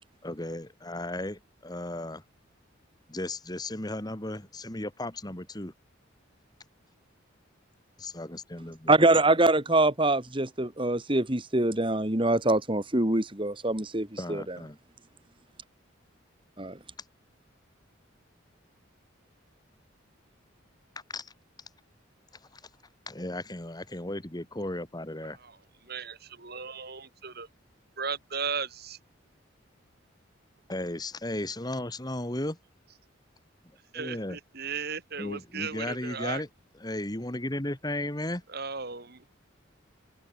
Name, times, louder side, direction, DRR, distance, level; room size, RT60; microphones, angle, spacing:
voice 1, 0.2-2.2 3.1-5.7 8.0-8.9 14.2-14.8 21.1-21.3 22.5-22.6 23.1-25.4 30.7-32.6 33.9-34.4 35.2-36.5 36.8-38.4, left 1 dB, 20° left, 2.0 m, -35 dB
voice 2, 8.9-14.6 16.6-16.8, right 2 dB, 25° right, 2.3 m, -24 dB
voice 3, 25.9-27.5 28.0-29.0 33.9-36.4 38.5-39.2, right 5 dB, 50° right, 3.6 m, -36 dB
open air
head